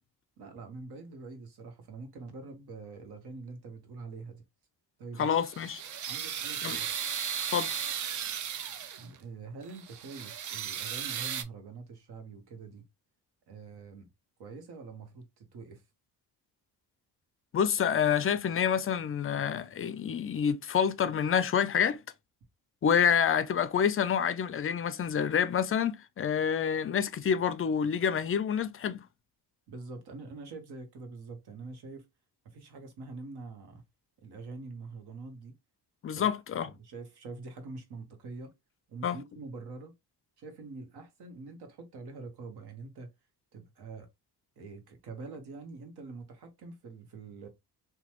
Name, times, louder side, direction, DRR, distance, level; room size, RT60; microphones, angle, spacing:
voice 1, 0.4-4.4 5.0-5.4 6.1-6.9 9.0-12.9 13.5-14.1 14.4-15.8 29.7-32.0 32.4-33.8 34.2-35.6 36.1-36.3 36.6-38.5 38.9-39.9 40.4-43.1 43.5-44.1 44.6-47.5, right 3 dB, 70° right, 1.1 m, -45 dB
voice 2, 5.2-5.8 6.6-6.8 7.5-7.8 17.5-22.0 22.8-29.0 36.0-36.7 39.0-39.2, left 7 dB, 35° left, 0.4 m, -28 dB
sound 1, 5.2-9.2 9.7-11.4, right 8 dB, 50° right, 0.5 m, -35 dB
2.9 x 2.3 x 2.9 m
cardioid pair, 95°, 40 cm